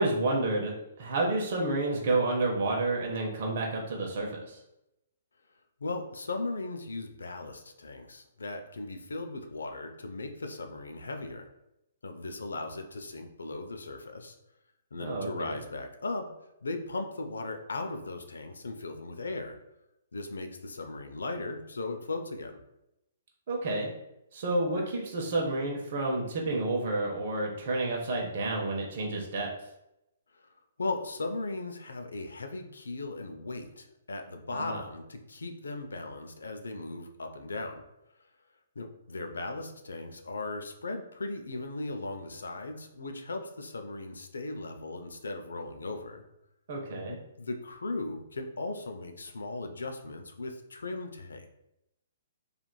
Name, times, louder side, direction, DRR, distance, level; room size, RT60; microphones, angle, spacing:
voice 1, 0.0-4.6 15.0-15.6 23.5-23.9 24.3-29.5 34.5-34.8 46.7-47.2, right 2 dB, 55° right, -1 dB, 0.6 m, -30 dB
voice 2, 5.8-11.5 12.0-14.4 14.9-16.3 16.6-19.6 20.1-22.6 30.8-37.8 38.8-46.2 47.1-51.5, left 2 dB, 85° left, 5 dB, 0.4 m, -37 dB
3.0 x 2.4 x 2.2 m, 0.87 s
hypercardioid pair, 135°, 0 cm